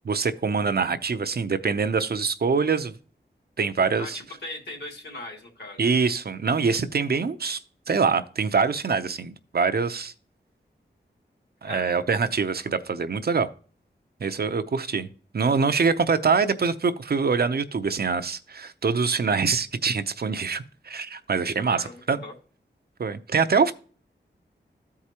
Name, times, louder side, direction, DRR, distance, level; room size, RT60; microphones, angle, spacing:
voice 1, 0.0-2.9 3.6-4.2 5.8-7.6 7.9-10.1 11.6-13.5 14.2-22.2 23.0-23.7, right 5 dB, 60° right, 0.6 m, -24 dB
voice 2, 4.0-5.8 11.6-12.0 21.7-22.3, left 2 dB, 65° left, 2.5 m, -39 dB
14.0 x 4.8 x 2.9 m
wide cardioid pair, 85°, 19 cm